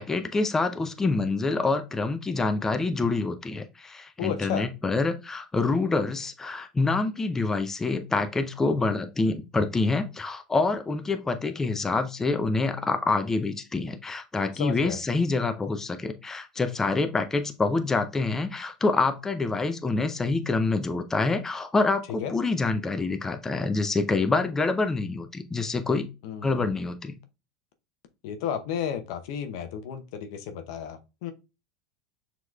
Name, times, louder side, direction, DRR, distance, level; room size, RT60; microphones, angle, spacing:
voice 1, 0.0-26.1 26.4-27.1, left 3 dB, 15° left, 7 dB, 0.5 m, -26 dB
voice 2, 4.2-4.7 14.6-15.0 22.2-22.3 26.2-26.7 28.2-31.3, left 8 dB, 65° left, 7 dB, 0.7 m, -33 dB
6.2 x 3.0 x 2.3 m, 0.28 s
hypercardioid pair, 95°, 3 cm